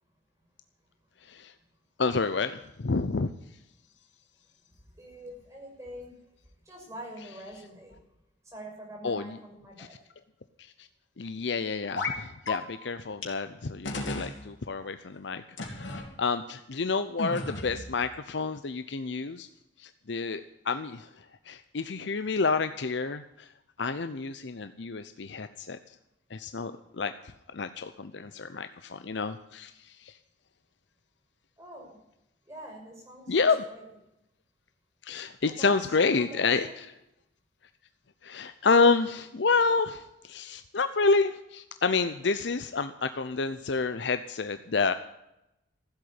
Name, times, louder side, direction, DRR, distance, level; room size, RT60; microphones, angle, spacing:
voice 1, 1.2-1.5 2.0-3.3 9.0-9.2 9.8-9.9 10.6-10.9 11.2-19.5 19.8-23.5 23.8-25.8 26.3-27.1 27.5-30.1 33.3-33.6 35.0-36.9 38.2-44.9, left 4 dB, 65° left, 11 dB, 0.7 m, -29 dB
voice 2, 4.8-6.2 6.6-8.0 8.4-10.0 31.6-32.0 32.5-33.9 35.4-36.9, right 1 dB, 15° right, 0 dB, 6.0 m, -45 dB
sound 1, 12.0-12.2 12.5-12.6 13.2-13.3 13.9-14.3 15.6-16.1 17.2-17.9, left 2 dB, 85° left, 3.5 m, -33 dB
15.0 x 8.1 x 9.7 m, 0.86 s
head